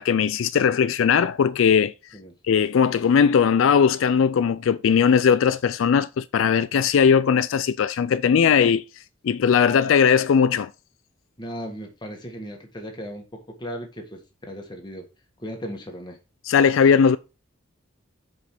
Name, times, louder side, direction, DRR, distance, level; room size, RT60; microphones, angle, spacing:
voice 1, 0.0-1.9 2.4-8.8 9.2-10.7 16.4-17.2, left 7 dB, 75° left, 0.4 m, -19 dB
voice 2, 11.4-15.1 15.4-16.2, equal, 20° left, 1.6 m, -36 dB
5.3 x 5.0 x 5.9 m
head